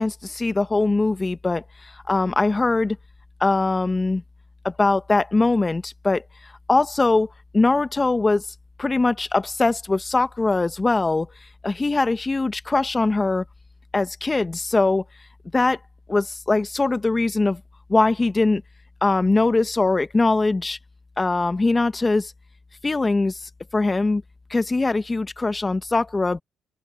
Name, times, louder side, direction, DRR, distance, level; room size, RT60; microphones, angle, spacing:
voice 1, 0.0-3.0 3.4-4.2 4.6-6.2 6.7-7.3 7.5-8.4 8.8-11.3 11.6-13.4 13.9-15.0 15.5-15.8 16.1-17.6 17.9-18.6 19.0-20.8 21.2-22.3 22.8-23.4 23.7-24.2 24.5-26.4, left 3 dB, 20° left, 1.1 m, -21 dB
open air
cardioid pair, 90°, 0 cm